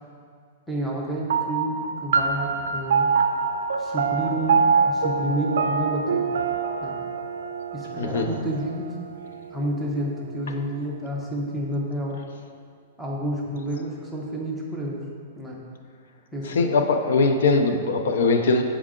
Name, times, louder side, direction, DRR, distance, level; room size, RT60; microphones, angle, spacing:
voice 1, 0.7-3.1 3.8-6.3 6.8-7.0 7.7-9.0 9.5-12.2 13.0-15.0 15.4-15.6 16.3-16.7, right 1 dB, ahead, -4 dB, 0.7 m, -29 dB
sound 1, 1.3-10.1, right 5 dB, 70° right, 0.4 m, -25 dB
voice 2, 8.0-8.3 16.4-18.6, left 3 dB, 75° left, 6 dB, 0.5 m, -21 dB
6.4 x 4.8 x 3.7 m, 2.1 s
hypercardioid pair, 170°, 0 cm